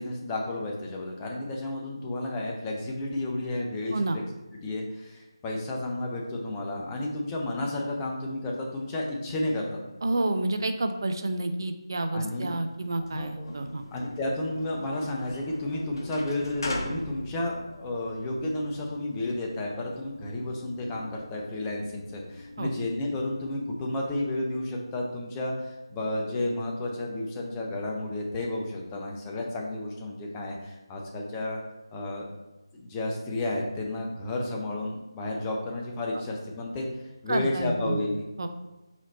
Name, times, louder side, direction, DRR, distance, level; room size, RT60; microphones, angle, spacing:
voice 1, 0.0-4.2 4.5-9.8 12.1-12.5 13.0-13.6 13.9-31.6 31.9-32.3 32.7-36.9 37.2-38.3, left 2 dB, 15° left, -1 dB, 0.5 m, -32 dB
voice 2, 10.0-13.8 22.6-22.7 37.3-38.0 38.4-38.5, right 2 dB, 50° right, 7 dB, 0.4 m, -29 dB
sound 1, 12.8-23.6, left 1 dB, 50° left, 0.8 m, -42 dB
4.0 x 3.1 x 4.1 m, 1.1 s
figure-of-eight pair, 160°, 3 cm